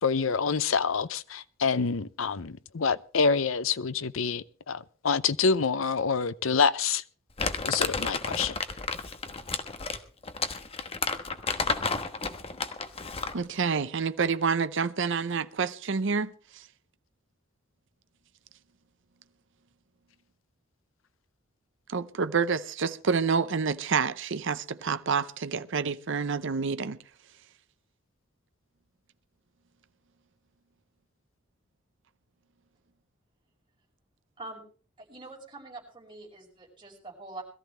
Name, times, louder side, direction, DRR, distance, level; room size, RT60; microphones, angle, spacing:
voice 1, 0.0-7.0 7.6-8.6, left 5 dB, 75° left, 0.7 m, -27 dB
Crumpling crinkling, 7.4-13.4, left 4 dB, 30° left, 1.2 m, -31 dB
voice 2, 13.3-16.6 21.9-27.0, right 5 dB, 65° right, 0.7 m, -28 dB
voice 3, 35.0-37.4, right 2 dB, 25° right, 5.8 m, -44 dB
22.0 x 14.0 x 3.3 m
head